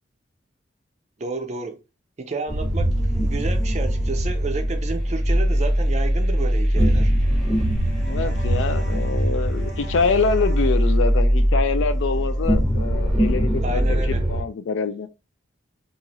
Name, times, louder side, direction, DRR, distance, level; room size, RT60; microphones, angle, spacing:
voice 1, 1.2-1.8 2.2-7.1 13.6-14.2, right 3 dB, 35° right, 0.4 m, -31 dB
sound 1, 2.5-14.4, equal, ahead, 0.7 m, -21 dB
voice 2, 8.1-15.1, left 5 dB, 75° left, 0.4 m, -25 dB
3.0 x 2.4 x 2.6 m
head